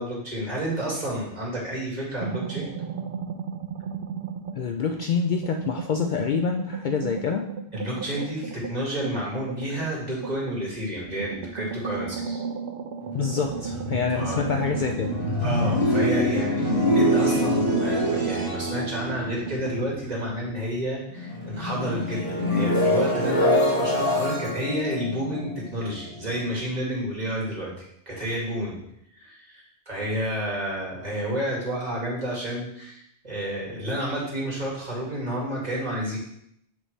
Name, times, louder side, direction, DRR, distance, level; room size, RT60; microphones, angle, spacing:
voice 1, 0.0-2.7 7.7-12.4 14.1-14.4 15.4-27.7 28.1-28.8 29.2-36.2, equal, 40° right, -5 dB, 2.2 m, -30 dB
sound 1, 2.2-4.7 5.0-10.6 11.1-16.1 16.4-19.8, right 6 dB, 70° right, 0.8 m, -34 dB
voice 2, 4.6-7.5 13.1-15.1, left 6 dB, 60° left, 3 dB, 0.6 m, -26 dB
sound 2, 13.0-20.8 21.1-26.2, equal, 25° left, 2.7 m, -25 dB
7.2 x 5.2 x 3.3 m, 0.73 s
omnidirectional pair, 1.1 m